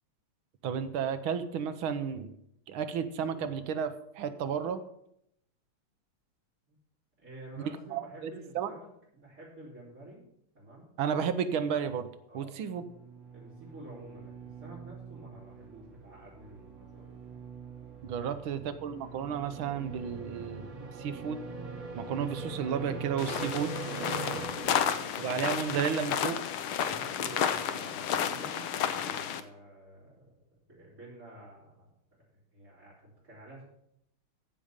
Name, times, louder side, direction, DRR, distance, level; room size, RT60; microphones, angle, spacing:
voice 1, 0.6-2.3 2.7-4.8 7.9-8.7 11.0-12.1 12.3-12.8 18.0-21.4 22.0-23.7 25.2-26.4, right 7 dB, 80° right, 10 dB, 1.7 m, -32 dB
voice 2, 7.2-10.2 10.5-10.9 12.3-12.6 13.3-17.4 18.2-18.3 24.2-25.4 26.8-30.3 30.7-31.9 32.2-32.3 32.5-33.6, right 1 dB, 40° right, -11 dB, 4.4 m, -50 dB
sound 1, 12.7-25.3, right 3 dB, 60° right, 2.7 m, -43 dB
sound 2, 23.2-29.4, left 8 dB, 75° left, 1.6 m, -31 dB
15.0 x 5.1 x 7.2 m, 0.76 s
omnidirectional pair, 2.3 m